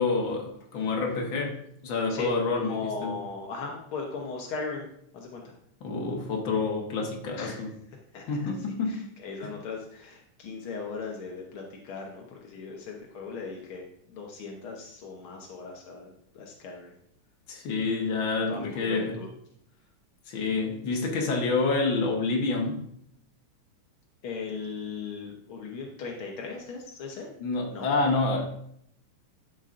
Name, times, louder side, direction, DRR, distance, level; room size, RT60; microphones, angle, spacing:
voice 1, 0.0-3.1 5.8-7.7 8.3-9.0 9.4-9.5 17.5-19.1 20.3-22.9 27.4-28.5, left 3 dB, 55° left, 1.4 m, -28 dB
voice 2, 2.6-4.9 5.1-5.5 7.4-7.6 8.1-8.5 8.8-17.0 18.5-19.3 24.2-27.3 27.7-27.9, left 4 dB, 80° left, 1.2 m, -38 dB
11.5 x 7.1 x 2.5 m
omnidirectional pair, 3.9 m